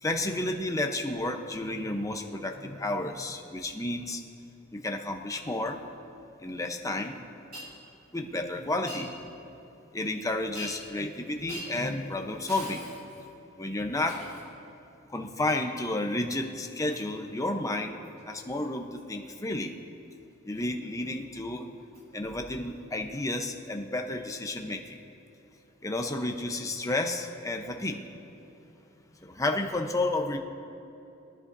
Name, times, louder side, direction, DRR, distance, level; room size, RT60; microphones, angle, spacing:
voice 1, 0.0-4.2 4.7-5.8 6.4-7.2 8.1-9.3 9.9-12.9 13.6-14.2 15.1-18.0 18.3-19.7 20.4-21.7 22.1-25.0 25.8-28.0 29.2-30.4, left 2 dB, 15° left, 3 dB, 0.8 m, -31 dB
Shatter, 7.5-7.7 8.9-9.1 10.5-11.0 11.5-11.8 12.5-13.3 14.1-14.5 16.9-17.1 18.0-18.2 19.0-19.1 21.9-22.0 23.1-23.2, equal, 45° right, 3.2 m, -43 dB
22.0 x 11.0 x 2.7 m, 2.9 s
head